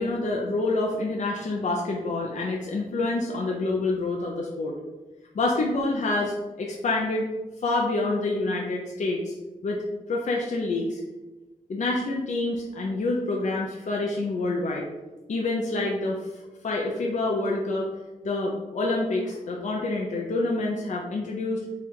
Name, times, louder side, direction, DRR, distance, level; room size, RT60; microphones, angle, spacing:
voice 1, 0.0-4.8 5.3-7.3 7.6-9.3 9.6-9.8 10.1-11.0 11.7-14.9 15.3-16.3 16.6-17.9 18.2-21.6, left 2 dB, 55° left, -1 dB, 0.5 m, -27 dB
3.6 x 2.4 x 4.3 m, 1.2 s
cardioid pair, 70°, 15 cm